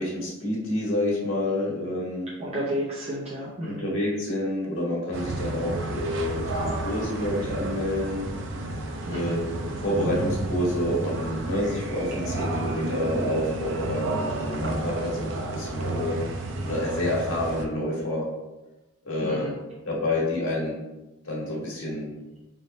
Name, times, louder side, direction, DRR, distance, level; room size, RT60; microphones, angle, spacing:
voice 1, 0.0-2.3 3.6-8.3 9.1-16.2 16.6-18.3 19.0-19.5 19.8-20.8 21.2-22.1, left 1 dB, 85° left, -4 dB, 1.4 m, -28 dB
voice 2, 2.4-3.8 9.1-9.4 19.2-19.5, equal, 30° right, -7 dB, 0.6 m, -31 dB
sound 1, 5.1-17.6, right 2 dB, 70° right, 0.5 m, -31 dB
3.5 x 2.7 x 4.0 m, 1.0 s
head